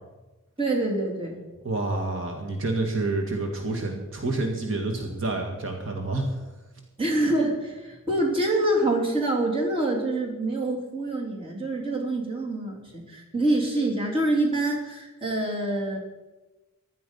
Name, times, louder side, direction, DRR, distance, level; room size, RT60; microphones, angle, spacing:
voice 1, 0.6-1.4 7.0-16.0, right 1 dB, 25° right, -1 dB, 3.2 m, -26 dB
voice 2, 1.6-6.3, right 2 dB, 60° right, 2 dB, 2.0 m, -28 dB
16.0 x 12.0 x 5.6 m, 1.1 s
head